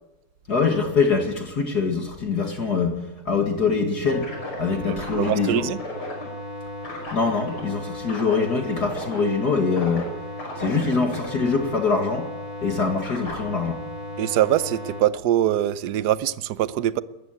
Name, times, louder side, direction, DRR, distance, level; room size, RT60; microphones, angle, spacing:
voice 1, 0.5-4.3 4.6-5.7 7.1-10.1 10.6-12.3 12.6-13.8, left 4 dB, 45° left, 2.6 m, -24 dB
sound 1, 4.1-15.0, equal, 75° left, 6.1 m, -35 dB
voice 2, 4.9-5.8 14.2-17.0, right 12 dB, 60° right, 1.2 m, -23 dB
19.0 x 14.5 x 9.4 m
omnidirectional pair, 2.4 m